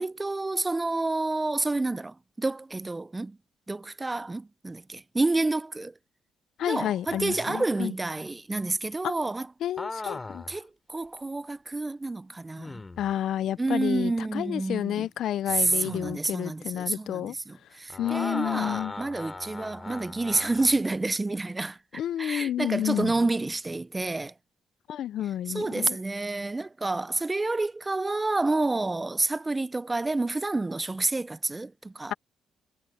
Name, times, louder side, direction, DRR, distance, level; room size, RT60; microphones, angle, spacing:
voice 1, 0.0-3.4 3.7-5.9 6.7-9.5 10.5-12.8 13.6-15.1 15.5-21.8 22.2-24.3 25.5-32.1, right 2 dB, 20° right, 0.5 m, -29 dB
voice 2, 6.6-7.9 9.0-9.1 9.6-10.6 13.0-17.4 18.0-18.9 21.9-23.1 24.9-26.0, left 11 dB, 70° left, 0.4 m, -30 dB
sound 1, 7.1-7.8 9.8-10.6 11.2-11.3 12.6-13.1 15.5-16.1 17.9-20.8 23.0-23.4, left 3 dB, 20° left, 2.9 m, -39 dB
cardioid pair, 90°, 0 cm